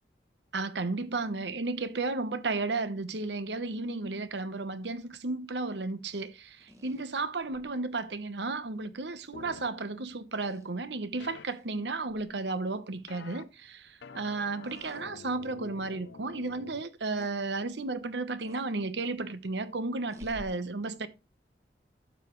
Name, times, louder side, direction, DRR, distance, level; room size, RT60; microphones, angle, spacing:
voice 1, 0.5-21.1, right 3 dB, 80° right, 1.0 m, -33 dB
sound 1, 6.6-7.7 9.4-9.5 10.3-10.7 11.5-11.7 12.1-12.3 14.6-15.0 15.6-15.7 17.2-17.3 18.4-18.6 20.1-20.5, equal, 20° right, 1.3 m, -51 dB
sound 2, 9.3-9.7 11.2-11.4 13.1-13.4 14.0-16.8, left 5 dB, 85° left, 0.6 m, -47 dB
12.0 x 7.1 x 3.1 m
head